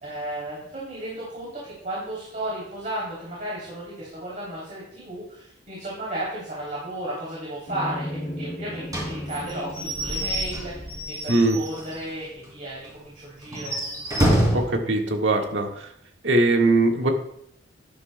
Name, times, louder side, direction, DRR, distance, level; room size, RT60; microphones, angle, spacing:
voice 1, 0.0-13.8, right 1 dB, 45° right, -6 dB, 3.4 m, -34 dB
sound 1, 7.7-12.2, left 1 dB, 50° left, 2.5 m, -36 dB
Slam / Squeak / Wood, 8.9-12.1 12.4-12.5 12.8-12.9 13.4-14.8, right 1 dB, 20° right, 3.4 m, -26 dB
voice 2, 14.5-15.9 16.2-17.1, right 2 dB, 80° right, 2 dB, 1.7 m, -21 dB
12.5 x 11.0 x 2.3 m, 0.72 s
head